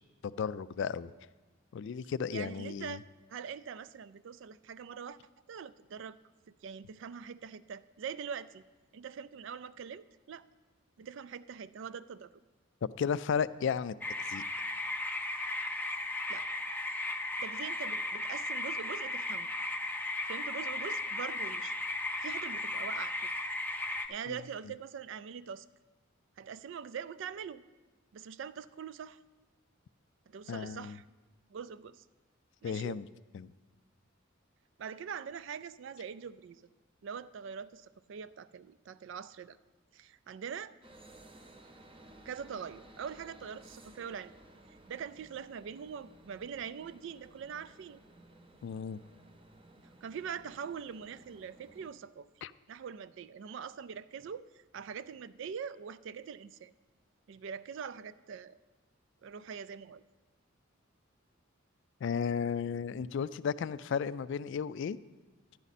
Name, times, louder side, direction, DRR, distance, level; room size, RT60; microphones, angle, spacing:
voice 1, 0.2-1.1 1.7-3.0 12.8-13.9 14.3-14.4 24.3-24.4 30.5-31.0 32.6-33.1 33.3-33.5 48.6-49.0 52.4-52.5 62.0-65.0, left 6 dB, 60° left, 16 dB, 0.3 m, -34 dB
voice 2, 2.3-3.0 3.3-5.2 5.5-6.2 6.6-8.6 8.9-10.5 11.0-12.3 16.3-16.5 17.4-19.5 20.2-21.7 22.2-23.1 24.1-25.7 26.4-27.6 28.1-29.2 30.3-31.0 31.5-32.0 32.6-33.0 34.8-36.6 37.0-39.6 39.9-40.7 42.3-44.3 44.9-48.0 50.0-52.3 52.7-56.7 57.3-58.6 59.2-60.0, right 7 dB, 60° right, 16 dB, 0.3 m, -43 dB
sound 1, 14.0-24.1, left 2 dB, 10° left, 0.5 m, -36 dB
sound 2, 40.8-51.9, right 1 dB, 25° right, 0.8 m, -57 dB
11.0 x 11.0 x 4.1 m, 1.2 s
head